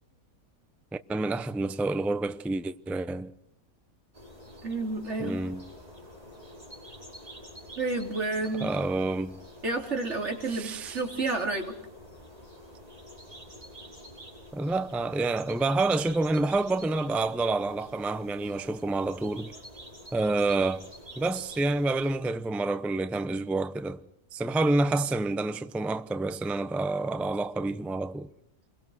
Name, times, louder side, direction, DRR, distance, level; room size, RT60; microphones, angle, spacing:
voice 1, 1.1-3.3 5.2-5.6 8.6-9.4 10.5-11.0 14.5-19.5 20.1-20.9 21.2-24.0 24.3-28.3, right 2 dB, ahead, 0.4 m, -28 dB
sound 1, 4.1-22.1, equal, 25° right, 5.8 m, -48 dB
voice 2, 4.6-5.4 7.8-8.7 9.6-11.7, right 3 dB, 50° right, 3.8 m, -30 dB
28.0 x 22.5 x 6.4 m
omnidirectional pair, 1.5 m